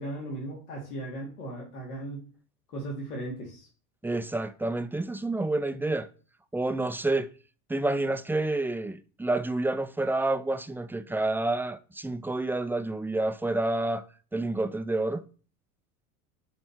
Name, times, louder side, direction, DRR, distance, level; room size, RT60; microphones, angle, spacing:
voice 1, 0.0-2.2 2.7-3.7, right 1 dB, 85° left, 3.0 m, -37 dB
voice 2, 4.0-6.1 6.5-7.3 7.7-14.0 14.3-15.3, right 2 dB, 5° right, 0.5 m, -29 dB
7.9 x 4.4 x 4.5 m
hypercardioid pair, 80°, 45 cm